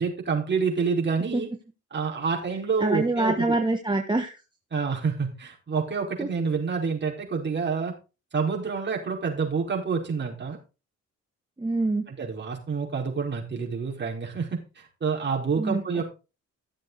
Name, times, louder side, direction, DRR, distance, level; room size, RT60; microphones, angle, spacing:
voice 1, 0.0-1.5 1.9-3.6 4.7-7.9 8.3-10.6 12.1-16.0, right 5 dB, 35° right, -1 dB, 4.9 m, -28 dB
voice 2, 2.8-4.3 6.2-6.3 11.6-12.1 15.6-16.0, right 2 dB, 15° right, 4 dB, 1.5 m, -25 dB
14.5 x 7.5 x 4.1 m, 0.31 s
cardioid pair, 90°, 30 cm